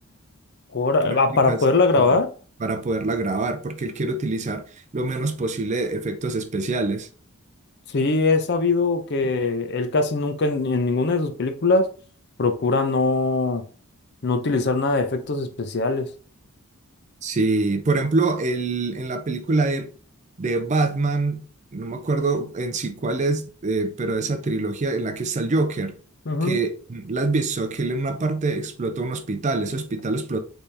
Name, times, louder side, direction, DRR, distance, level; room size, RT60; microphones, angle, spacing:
voice 1, 0.7-2.3 7.9-11.9 12.4-13.6 14.2-16.1 26.3-26.6, left 3 dB, 50° left, 0.6 m, -21 dB
voice 2, 2.6-4.6 4.9-7.1 17.2-19.9 20.4-21.4 21.7-25.9 26.4-30.4, right 3 dB, 30° right, 0.4 m, -25 dB
4.2 x 3.4 x 3.3 m
head